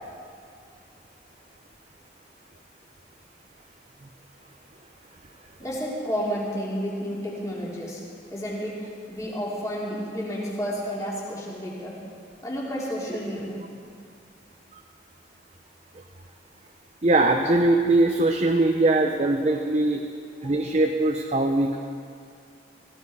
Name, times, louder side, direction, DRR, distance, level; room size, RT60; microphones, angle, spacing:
voice 1, 5.6-8.0 8.3-12.0 12.4-13.6 20.4-20.7, equal, 20° left, -5 dB, 2.6 m, -31 dB
voice 2, 17.0-20.0 20.4-21.8, right 2 dB, 35° right, 3 dB, 0.7 m, -21 dB
17.0 x 15.0 x 4.1 m, 2.3 s
head